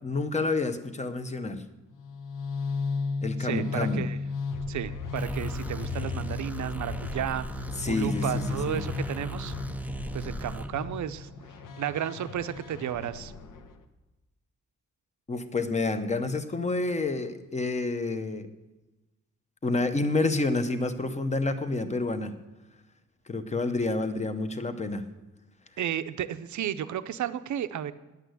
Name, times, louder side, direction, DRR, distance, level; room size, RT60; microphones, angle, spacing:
voice 1, 0.0-1.6 3.2-4.1 7.8-8.8 15.3-18.5 19.6-22.4 23.3-25.1, left 3 dB, 20° left, 9 dB, 0.7 m, -29 dB
sound 1, 1.9-13.8, left 4 dB, 75° left, 1.0 m, -35 dB
voice 2, 3.4-4.2 4.7-7.4 7.9-9.5 10.1-11.3 11.8-13.3 25.8-27.9, right 10 dB, 65° right, 12 dB, 0.6 m, -33 dB
sound 2, 5.1-10.7, right 1 dB, 5° right, 0.3 m, -37 dB
10.5 x 8.3 x 7.8 m, 1.1 s
wide cardioid pair, 175°, 32 cm